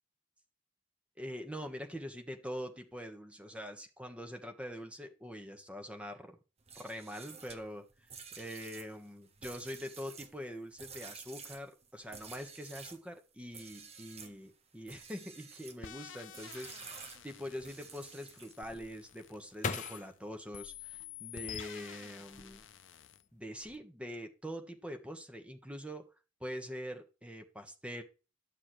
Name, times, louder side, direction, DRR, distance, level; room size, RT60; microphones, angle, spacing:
voice 1, 1.2-6.4 6.7-7.9 8.4-22.6 23.3-26.1 26.4-28.0, equal, 5° right, 1.4 m, -44 dB
sound 1, 6.6-13.0 13.5-14.4 14.8-15.8 16.3-18.7, right 5 dB, 30° right, 1.3 m, -51 dB
sound 2, 15.8-20.1 20.5-23.2, left 10 dB, 70° left, 0.7 m, -50 dB
sound 3, 18.6-21.7 22.2-23.0 23.3-23.8, left 4 dB, 40° left, 0.8 m, -42 dB
12.0 x 6.9 x 3.2 m
head